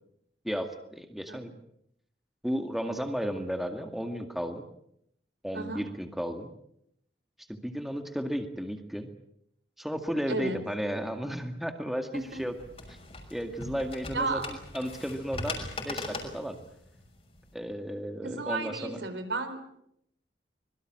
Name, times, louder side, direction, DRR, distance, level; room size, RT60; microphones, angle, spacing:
voice 1, 0.4-1.5 2.4-4.6 5.4-6.5 7.5-9.1 9.8-12.5 12.9-13.0 13.3-16.6 17.5-19.0, equal, ahead, 5 dB, 2.0 m, -34 dB
voice 2, 5.5-5.8 10.3-10.6 12.1-12.4 14.1-14.5 18.2-19.6, right 3 dB, 85° right, 9 dB, 4.3 m, -33 dB
sound 1, 12.1-17.5, left 2 dB, 35° left, 5.8 m, -40 dB
25.0 x 22.5 x 7.7 m, 0.74 s
head